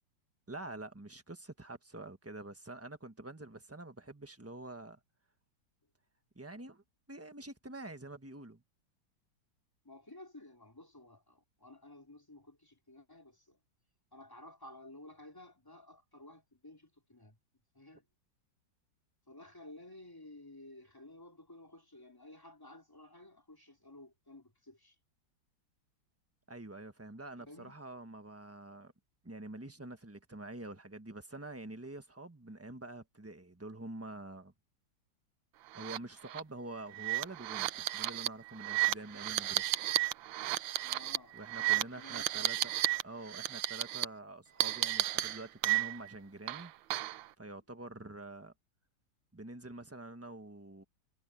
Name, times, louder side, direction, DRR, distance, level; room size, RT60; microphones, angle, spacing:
voice 1, 0.5-5.0 6.3-6.8 7.1-8.6 26.5-28.9 29.2-34.5 35.7-39.7 41.3-42.7 43.0-46.7 47.4-48.5 49.3-50.8, right 2 dB, 10° right, 1.1 m, -47 dB
voice 2, 9.8-13.6 14.1-17.4 17.7-18.0 19.3-24.9 27.4-27.8 40.8-42.7, left 1 dB, 10° left, 3.2 m, -54 dB
sound 1, 35.8-36.0 36.3-36.4 36.9-43.0 43.3-44.0 44.6-46.1 46.5-47.2, right 15 dB, 90° right, 1.5 m, -33 dB
omnidirectional pair, 2.0 m